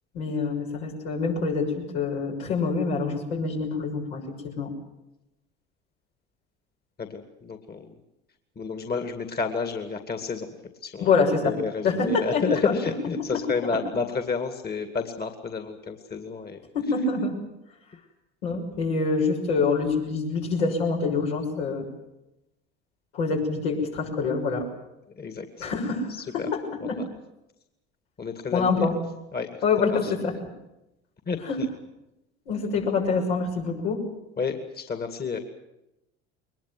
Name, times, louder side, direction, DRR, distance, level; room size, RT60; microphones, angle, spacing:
voice 1, 0.1-4.7 11.0-11.5 11.8-12.7 13.5-13.7 16.7-17.3 18.4-21.9 23.1-24.7 25.6-27.0 28.5-28.9 29.6-30.3 31.4-31.6 32.5-34.0, left 4 dB, 75° left, -1 dB, 6.3 m, -26 dB
voice 2, 7.0-8.0 8.6-10.6 10.8-11.2 11.4-16.6 25.2-25.7 26.4-26.5 26.8-27.0 28.2-28.9 29.3-29.6 29.9-30.1 31.3-31.7 34.4-35.4, left 5 dB, 30° left, 7 dB, 2.4 m, -30 dB
22.0 x 21.0 x 7.8 m, 0.91 s
hypercardioid pair, 70°, 33 cm